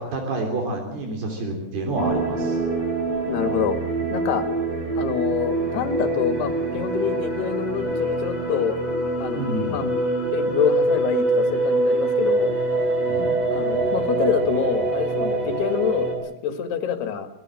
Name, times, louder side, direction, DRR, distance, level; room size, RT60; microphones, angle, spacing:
voice 1, 0.0-2.6 9.4-9.8 13.1-13.4, right 2 dB, 65° right, 2 dB, 5.2 m, -28 dB
sound 1, 2.0-16.1, right 2 dB, 30° right, 7.7 m, -24 dB
voice 2, 3.3-3.8 4.1-4.5 5.0-8.8 9.2-10.0 10.3-12.5 13.5-17.3, left 8 dB, 70° left, 8 dB, 3.9 m, -26 dB
24.5 x 19.0 x 7.7 m, 0.82 s
omnidirectional pair, 4.9 m